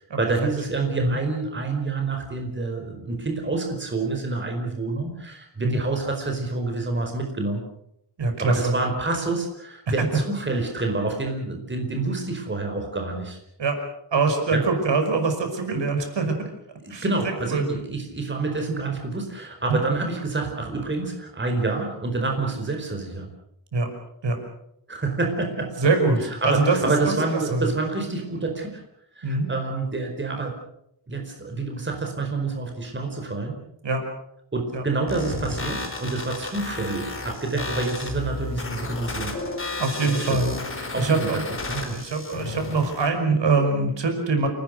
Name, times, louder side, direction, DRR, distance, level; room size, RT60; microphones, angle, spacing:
voice 1, 0.2-7.6 8.4-13.4 14.5-14.6 16.8-23.3 24.9-25.7 26.4-28.8 29.1-30.5 31.1-33.5 34.5-39.3 40.0-40.5 40.9-41.3 41.7-42.0, right 3 dB, 25° right, 3 dB, 4.8 m, -27 dB
voice 2, 8.2-8.8 10.0-10.2 13.6-13.8 14.1-16.4 16.9-17.7 19.7-19.8 23.7-23.9 24.2-24.4 25.8-27.2 27.5-27.7 29.2-29.5 33.8-34.0 34.7-34.8 37.5-37.7 39.8-41.5 41.9-44.5, right 3 dB, 80° right, 5 dB, 5.7 m, -24 dB
sound 1, 35.1-43.1, left 2 dB, 30° left, 4.5 m, -33 dB
29.0 x 19.0 x 6.6 m, 0.76 s
wide cardioid pair, 155°, 43 cm